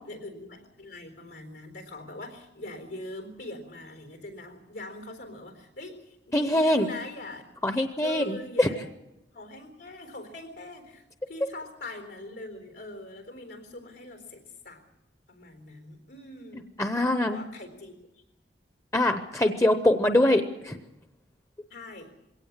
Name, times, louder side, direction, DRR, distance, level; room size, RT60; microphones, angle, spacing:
voice 1, 0.0-7.4 8.0-8.8 9.3-14.8 15.3-16.7 17.2-17.9 21.7-22.1, left 1 dB, 90° left, 5 dB, 4.1 m, -42 dB
voice 2, 6.3-6.9 7.6-8.7 16.8-17.4 18.9-20.8, left 1 dB, 15° left, 8 dB, 0.7 m, -23 dB
21.5 x 17.5 x 7.3 m, 0.92 s
head